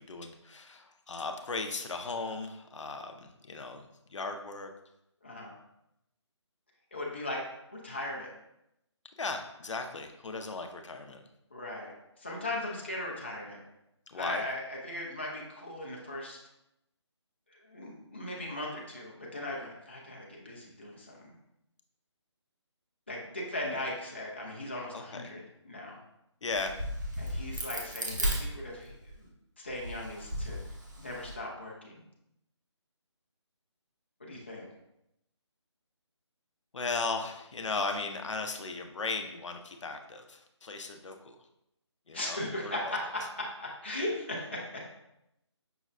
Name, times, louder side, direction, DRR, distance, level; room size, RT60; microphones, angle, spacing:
voice 1, 0.0-4.7 9.2-11.2 14.1-14.4 23.6-23.8 24.9-25.3 26.4-26.7 36.7-41.4 42.1-42.9, left 3 dB, 80° left, 5 dB, 0.5 m, -37 dB
voice 2, 6.9-7.4 7.7-8.3 11.5-11.9 12.2-13.6 14.1-16.4 17.6-21.3 23.1-26.0 27.2-29.3 29.6-30.6 31.0-32.0 34.2-34.7 42.1-44.9, left 1 dB, 25° left, -3 dB, 0.4 m, -38 dB
Crack, 26.5-29.2 29.7-31.3, right 1 dB, 40° right, 0.6 m, -35 dB
5.5 x 2.1 x 2.4 m, 0.84 s
figure-of-eight pair, 175°, 15 cm